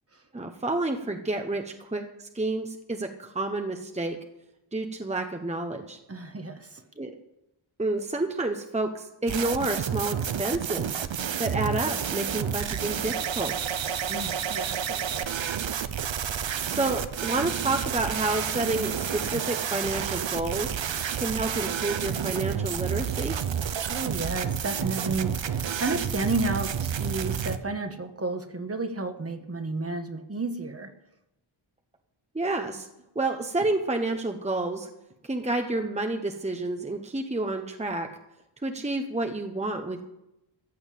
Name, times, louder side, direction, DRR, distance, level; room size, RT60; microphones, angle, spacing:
voice 1, 0.3-4.2 4.7-6.0 7.0-7.2 7.8-11.0 11.4-13.5 16.7-20.7 21.2-23.3 32.3-32.9 33.1-34.9 35.2-38.1 38.6-40.0, right 2 dB, 15° right, 5 dB, 1.1 m, -29 dB
voice 2, 6.1-6.8 11.9-12.0 14.1-15.4 23.8-30.9, right 3 dB, 30° right, 7 dB, 1.3 m, -32 dB
sound 1, 9.3-27.6, right 8 dB, 70° right, 0.9 m, -30 dB
14.5 x 7.1 x 8.6 m, 0.89 s
wide cardioid pair, 100°, 47 cm